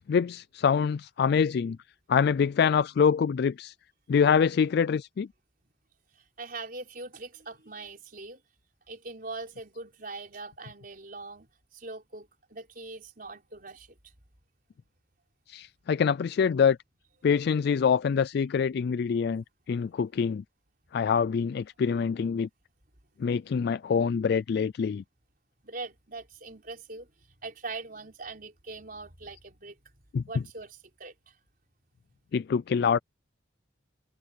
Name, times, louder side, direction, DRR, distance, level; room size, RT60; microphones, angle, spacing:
voice 1, 0.1-1.8 2.1-3.7 4.1-5.3 15.5-16.8 17.2-20.4 20.9-22.5 23.2-25.0 30.1-30.2 32.3-33.0, left 6 dB, 55° left, 0.3 m, -25 dB
voice 2, 6.1-8.4 8.9-14.1 25.6-27.1 27.4-29.8 30.3-31.4, right 3 dB, 45° right, 4.5 m, -42 dB
head